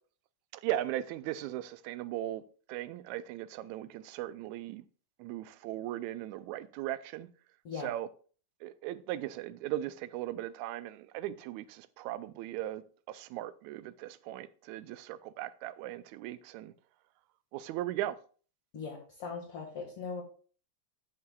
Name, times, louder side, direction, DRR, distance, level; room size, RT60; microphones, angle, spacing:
voice 1, 0.5-2.4 2.7-4.8 5.2-7.3 7.8-8.1 8.6-16.7 17.5-18.2, right 13 dB, 85° right, 1.9 m, -38 dB
voice 2, 18.7-20.2, left 5 dB, 55° left, 2.4 m, -40 dB
14.0 x 5.7 x 2.3 m
omnidirectional pair, 3.3 m